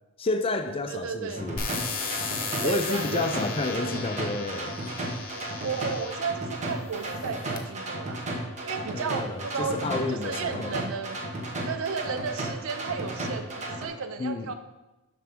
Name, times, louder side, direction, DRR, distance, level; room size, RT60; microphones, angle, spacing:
voice 1, 0.2-1.6 2.6-4.7 8.9-10.8 14.2-14.5, left 3 dB, 25° left, 7 dB, 0.4 m, -30 dB
voice 2, 0.9-1.5 2.6-4.0 5.6-8.3 8.7-11.2 11.7-14.5, right 5 dB, 65° right, 9 dB, 0.4 m, -33 dB
sound 1, 1.4-13.9, right 1 dB, 35° right, 1.0 m, -34 dB
sound 2, 1.6-6.3 7.0-7.6, left 5 dB, 45° left, 0.8 m, -36 dB
7.6 x 5.9 x 3.6 m, 1.0 s
head